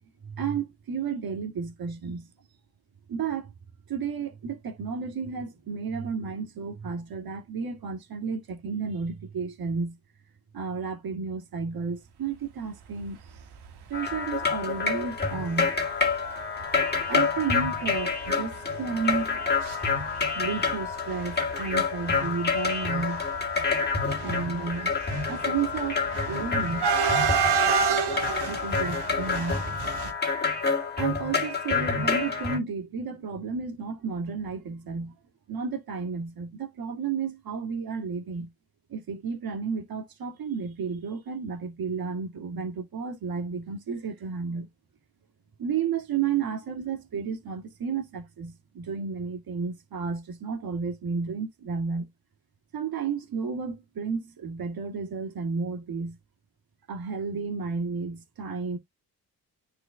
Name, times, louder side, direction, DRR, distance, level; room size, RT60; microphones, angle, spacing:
voice 1, 0.2-2.3 3.1-3.5 3.9-10.0 10.5-13.2 13.9-15.8 17.1-19.5 20.3-23.3 24.2-24.9 25.3-26.0 26.3-26.9 28.5-29.6 31.0-35.1 35.5-38.5 38.9-44.7 45.6-52.1 52.7-56.2 56.9-58.8, right 5 dB, 65° right, 2.2 m, -32 dB
sound 1, 13.9-32.6, left 4 dB, 25° left, 2.1 m, -28 dB
sound 2, 14.1-14.3 14.8-14.9 15.1-15.3 16.1-16.2 16.6-16.8 17.1-17.2 17.5-19.8 20.0-20.7 21.0-30.1, right 6 dB, 80° right, 1.7 m, -29 dB
9.7 x 4.3 x 2.3 m
cardioid pair, 85°, 39 cm